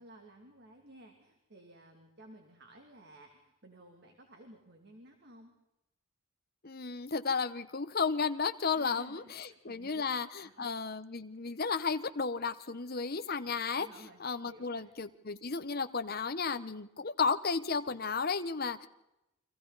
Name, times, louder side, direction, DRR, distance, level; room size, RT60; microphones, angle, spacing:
voice 1, 0.0-5.5 8.7-10.0 10.3-10.8 11.4-11.5 13.8-14.9, right 1 dB, 50° right, 3 dB, 2.8 m, -55 dB
voice 2, 6.6-13.9 14.2-18.9, left 5 dB, 45° left, 10 dB, 1.1 m, -33 dB
30.0 x 25.0 x 4.2 m, 0.90 s
head